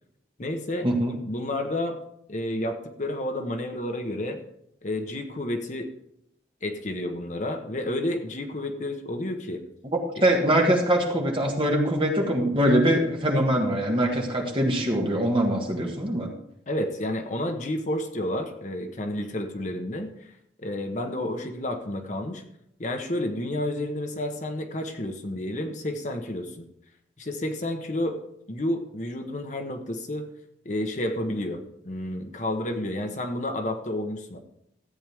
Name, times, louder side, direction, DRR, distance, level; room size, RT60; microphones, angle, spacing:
voice 1, 0.4-2.0 2.3-4.4 4.8-5.9 6.6-9.6 16.7-20.3 20.6-22.4 22.8-26.7 27.2-28.2 28.5-30.3 30.6-34.4, left 1 dB, 40° left, 5 dB, 1.0 m, -30 dB
voice 2, 10.2-16.3, right 1 dB, 30° right, 0 dB, 1.7 m, -23 dB
14.0 x 8.8 x 3.5 m, 0.76 s
head